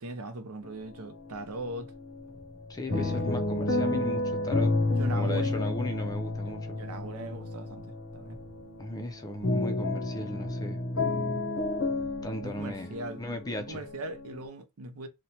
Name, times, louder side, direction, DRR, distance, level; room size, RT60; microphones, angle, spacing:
voice 1, 0.0-1.9 2.9-3.2 4.8-5.6 6.7-8.4 12.4-13.2 13.7-15.1, right 2 dB, 85° right, 0.6 m, -40 dB
sound 1, 0.6-1.4 1.7-14.4, left 2 dB, 65° left, 0.7 m, -31 dB
voice 2, 2.7-4.7 5.1-6.8 8.8-10.8 12.2-13.8, left 1 dB, 15° left, 0.4 m, -36 dB
3.0 x 2.1 x 2.7 m
head